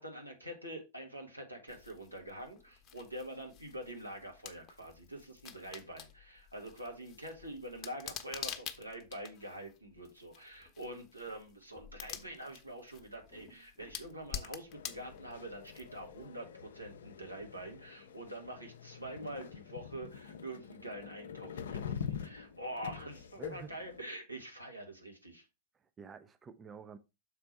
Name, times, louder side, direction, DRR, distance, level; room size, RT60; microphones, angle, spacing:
voice 1, 0.0-25.4, right 1 dB, 90° right, 1.8 m, -45 dB
sound 1, 1.7-16.2, left 8 dB, 30° left, 0.9 m, -49 dB
sound 2, 14.7-24.0, left 8 dB, 65° left, 0.6 m, -45 dB
voice 2, 23.4-23.8 25.7-27.0, right 6 dB, 20° right, 0.5 m, -49 dB
6.6 x 4.2 x 4.4 m
figure-of-eight pair, 90°, 0 cm